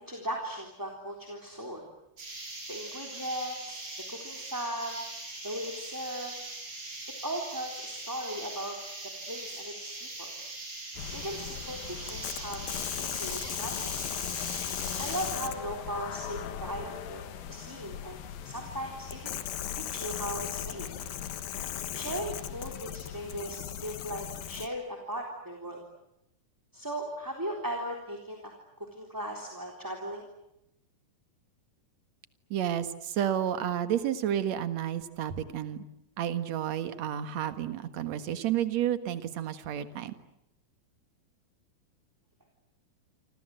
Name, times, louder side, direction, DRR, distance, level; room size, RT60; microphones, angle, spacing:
voice 1, 0.0-1.8 2.7-3.8 4.1-5.0 5.4-6.3 7.2-8.8 9.3-10.3 11.1-12.6 12.9-13.9 15.0-19.4 19.7-20.9 21.9-25.8 26.7-28.5 28.9-30.2, equal, 5° right, 1 dB, 3.3 m, -37 dB
sound 1, 2.2-15.3, right 2 dB, 30° right, 8.7 m, -41 dB
sound 2, 11.0-24.7, left 10 dB, 85° left, 3.2 m, -37 dB
voice 2, 32.5-35.8 36.2-40.1, right 10 dB, 55° right, 10 dB, 2.6 m, -31 dB
28.5 x 26.5 x 7.9 m, 0.85 s
omnidirectional pair, 4.0 m